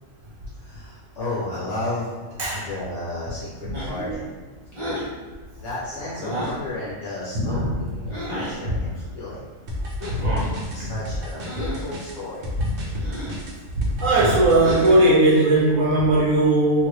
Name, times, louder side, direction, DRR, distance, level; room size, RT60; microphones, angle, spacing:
voice 1, 0.5-4.3 5.6-9.4 10.7-12.5, left 2 dB, 65° left, -8 dB, 1.0 m, -33 dB
sound 1, 3.7-4.1 4.7-5.1 6.2-6.7 8.1-8.6 10.0-10.5 11.4-11.9 12.9-13.4 14.5-15.2, equal, 25° right, 0.8 m, -31 dB
sound 2, 9.7-15.0, left 1 dB, 55° right, 0.6 m, -32 dB
voice 2, 10.1-10.5 10.8-10.9 13.7-16.9, right 2 dB, 80° right, -5 dB, 1.0 m, -18 dB
2.9 x 2.5 x 3.1 m, 1.3 s
omnidirectional pair, 1.4 m